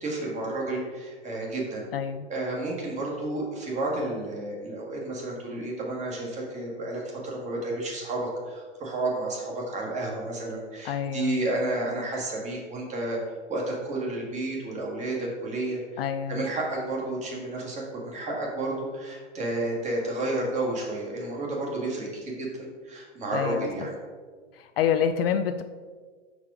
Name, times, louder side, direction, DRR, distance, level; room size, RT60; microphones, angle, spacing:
voice 1, 0.0-1.8 2.3-13.2 13.5-16.0 16.3-23.9, right 2 dB, 20° right, -2 dB, 1.7 m, -31 dB
voice 2, 1.9-2.3 10.8-11.4 16.0-16.4 23.3-23.9 24.5-25.6, left 8 dB, 55° left, 8 dB, 0.4 m, -27 dB
5.5 x 4.9 x 4.9 m, 1.5 s
hypercardioid pair, 135°, 35 cm